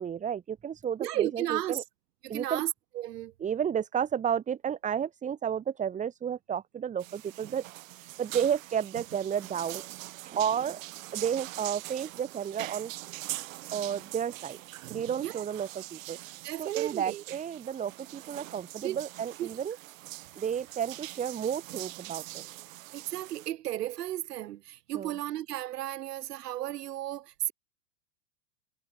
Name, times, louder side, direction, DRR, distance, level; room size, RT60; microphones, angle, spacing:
voice 1, 0.0-1.8 2.3-2.6 3.4-10.8 11.1-12.9 13.7-14.6 14.9-16.2 16.6-19.8 20.3-22.4 24.9-25.1, right 8 dB, 15° right, 4.9 m, -32 dB
voice 2, 1.0-1.8 2.2-3.3 15.2-15.4 16.4-17.2 18.8-19.0 19.4-19.5 22.9-27.5, right 14 dB, 70° right, 3.0 m, -34 dB
sound 1, 7.0-23.5, right 18 dB, 50° right, 4.7 m, -43 dB
supercardioid pair, 165°, 50 cm